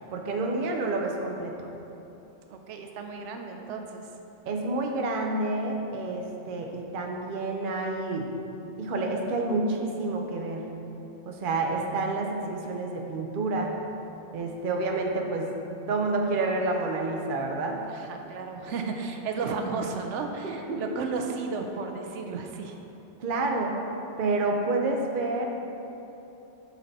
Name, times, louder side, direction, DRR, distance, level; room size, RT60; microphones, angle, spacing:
voice 1, 0.1-1.5 4.4-8.3 8.8-10.6 11.3-13.8 14.3-15.5 15.9-17.8 20.4-20.8 23.2-23.8 24.2-25.5, right 2 dB, 50° right, 2 dB, 0.8 m, -29 dB
voice 2, 2.5-4.1 17.9-22.8, right 4 dB, 85° right, 4 dB, 0.9 m, -33 dB
7.4 x 5.9 x 4.1 m, 3.0 s
omnidirectional pair, 1.2 m